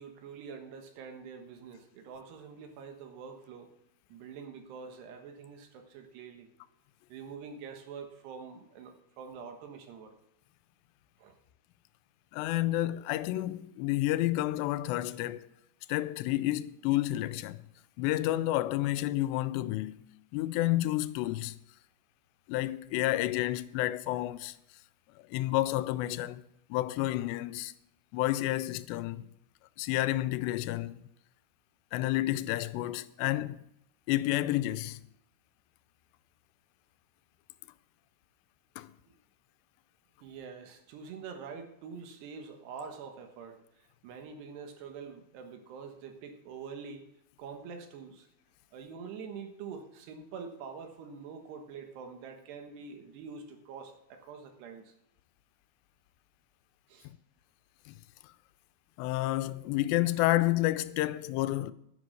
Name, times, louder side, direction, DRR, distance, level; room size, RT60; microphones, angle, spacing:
voice 1, 0.0-3.7 4.1-6.5 7.1-10.2 11.2-11.3 39.1-39.2 40.2-47.1 47.4-48.3 48.7-54.9 56.9-57.1, right 6 dB, 75° right, 3.4 m, -45 dB
voice 2, 12.3-15.5 15.9-17.6 18.0-20.1 20.3-21.6 22.5-24.6 25.3-26.4 26.7-27.7 28.1-29.3 29.8-31.0 31.9-33.6 34.1-35.0 38.8-38.9 57.9-58.0 59.0-61.7, left 16 dB, 85° left, 2.7 m, -30 dB
9.9 x 9.8 x 6.3 m
omnidirectional pair, 4.9 m